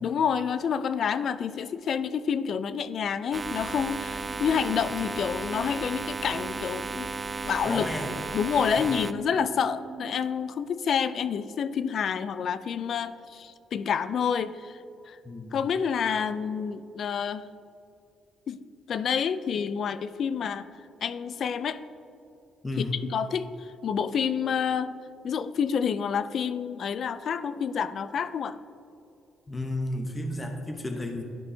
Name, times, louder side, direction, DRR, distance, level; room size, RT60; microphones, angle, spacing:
voice 1, 0.0-7.1 7.4-7.9 8.3-14.8 15.1-15.2 15.5-17.5 18.5-18.6 18.9-20.7 21.0-21.8 22.8-24.9 25.2-28.6, left 7 dB, 60° left, 13 dB, 0.3 m, -28 dB
sound 1, 3.3-9.1, right 3 dB, 25° right, 0.3 m, -35 dB
sound 2, 3.4-10.3, right 5 dB, 45° right, 1.4 m, -42 dB
voice 2, 7.7-8.1 8.7-8.9 15.2-15.6 22.6-23.0 29.5-31.2, left 2 dB, 20° left, 3 dB, 0.8 m, -32 dB
12.0 x 5.4 x 2.7 m, 2.6 s
cardioid pair, 90°, 0 cm